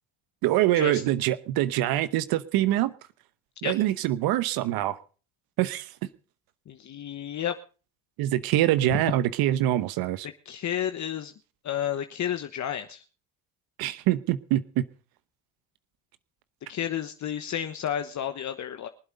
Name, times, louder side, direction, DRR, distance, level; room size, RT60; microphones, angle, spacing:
voice 1, 0.4-2.9 3.6-5.0 5.6-5.9 8.2-10.3 13.8-14.8, right 14 dB, 75° right, 15 dB, 1.0 m, -24 dB
voice 2, 6.7-7.6 8.9-9.0 10.2-11.3 11.6-13.0 16.7-18.9, left 10 dB, 50° left, 8 dB, 1.2 m, -31 dB
24.0 x 8.0 x 5.3 m, 0.38 s
supercardioid pair, 75°, 37 cm